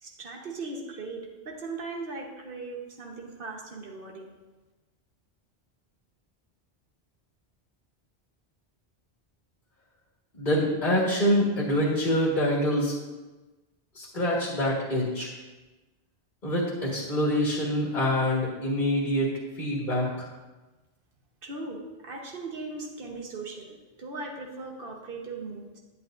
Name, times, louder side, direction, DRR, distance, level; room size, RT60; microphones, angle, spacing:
voice 1, 0.0-4.3 21.4-25.8, right 3 dB, 60° right, 1 dB, 1.3 m, -38 dB
voice 2, 10.4-12.9 14.0-15.3 16.4-19.3 19.6-20.3, equal, 45° left, -5 dB, 1.7 m, -25 dB
11.0 x 8.2 x 2.6 m, 1.2 s
omnidirectional pair, 1.1 m